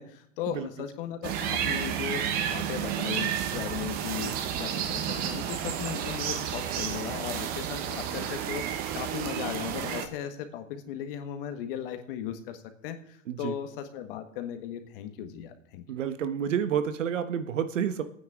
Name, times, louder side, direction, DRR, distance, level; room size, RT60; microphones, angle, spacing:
voice 1, 0.0-2.2 2.5-15.8, left 9 dB, 45° left, 7 dB, 1.6 m, -37 dB
sound 1, 1.2-10.1, right 9 dB, 25° right, 0.8 m, -31 dB
voice 2, 15.9-18.0, right 8 dB, 75° right, 11 dB, 1.3 m, -29 dB
23.0 x 9.3 x 3.7 m, 0.68 s
hypercardioid pair, 145°, 38 cm